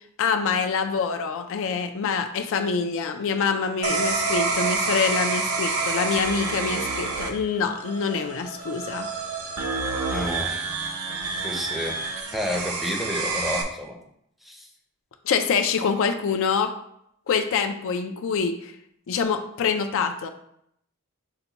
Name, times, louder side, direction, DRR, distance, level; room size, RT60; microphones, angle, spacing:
voice 1, 0.2-9.1 15.2-16.7 17.3-18.7 19.1-20.3, left 6 dB, 65° left, 7 dB, 0.4 m, -25 dB
sound 1, 3.8-13.6, right 4 dB, 80° right, 0.6 m, -28 dB
voice 2, 10.1-10.7 11.4-12.0 12.3-14.0 14.4-14.7, equal, ahead, 0 dB, 0.5 m, -30 dB
5.6 x 2.2 x 3.9 m, 0.73 s
head